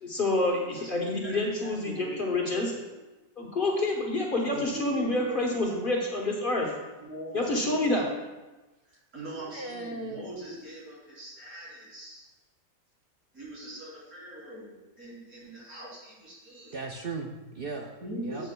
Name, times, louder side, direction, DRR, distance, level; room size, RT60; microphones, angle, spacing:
voice 1, 0.0-2.7 3.4-6.7 7.3-8.1, left 2 dB, 40° left, -1 dB, 1.2 m, -28 dB
voice 2, 1.6-2.7 4.5-5.4 6.6-6.7 7.0-8.1 8.9-12.2 13.3-16.8 18.0-18.5, right 1 dB, 80° right, -8 dB, 3.5 m, -41 dB
voice 3, 9.5-10.3 16.7-17.9 18.2-18.4, right 3 dB, 55° right, 2 dB, 0.7 m, -37 dB
10.5 x 7.4 x 2.3 m, 1.1 s
omnidirectional pair, 1.5 m